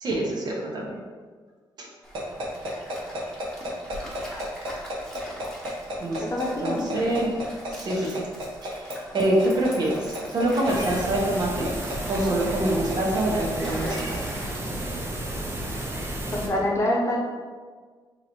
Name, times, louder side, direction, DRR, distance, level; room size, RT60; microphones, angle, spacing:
voice 1, 0.0-1.0 1.8-1.9 6.0-6.2 6.6-7.4 7.8-8.2 8.6-11.7 12.1-14.2, right 1 dB, 50° right, -2 dB, 1.0 m, -25 dB
Stream, 2.0-15.1, equal, 5° left, 1.0 m, -42 dB
sound 1, 2.1-14.2, equal, 70° right, 1.1 m, -32 dB
voice 2, 6.2-6.9 16.3-17.2, left 1 dB, 35° left, -2 dB, 0.9 m, -25 dB
sound 2, 10.7-16.5, right 1 dB, 25° right, 0.7 m, -32 dB
3.9 x 2.9 x 4.3 m, 1.5 s
cardioid pair, 125°, 9 cm